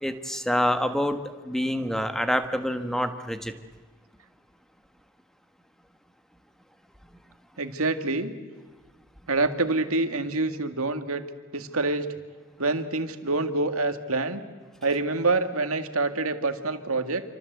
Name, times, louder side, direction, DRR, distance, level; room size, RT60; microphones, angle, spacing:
voice 1, 0.0-1.2 1.4-3.5, equal, ahead, 8 dB, 1.4 m, -26 dB
voice 2, 7.6-8.3 9.3-11.2 11.5-12.1 12.6-14.4 14.8-17.2, right 3 dB, 85° right, 7 dB, 2.1 m, -26 dB
27.5 x 25.0 x 8.1 m, 1.4 s
head